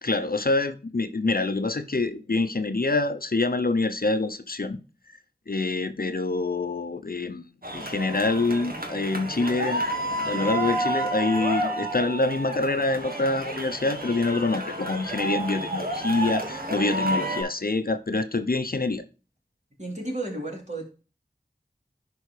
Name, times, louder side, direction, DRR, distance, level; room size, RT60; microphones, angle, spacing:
voice 1, 0.0-4.8 5.5-7.5 7.7-9.8 10.3-19.0, left 3 dB, 60° left, 0.7 m, -26 dB
sound 1, 7.6-17.4, right 1 dB, 60° right, 1.9 m, -30 dB
voice 2, 19.8-20.8, right 2 dB, 40° right, 3.6 m, -32 dB
11.0 x 4.7 x 3.3 m
wide cardioid pair, 45°, 17 cm